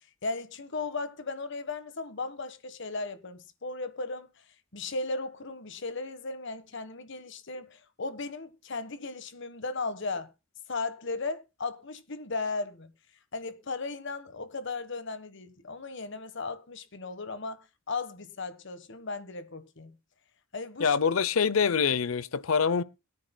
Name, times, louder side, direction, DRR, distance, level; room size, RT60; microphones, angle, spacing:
voice 1, 0.2-4.3 4.7-10.3 10.7-12.9 13.3-19.9 20.5-21.0, left 3 dB, 60° left, 1.4 m, -36 dB
voice 2, 20.8-22.8, left 6 dB, 85° left, 0.7 m, -25 dB
21.5 x 9.7 x 2.2 m
head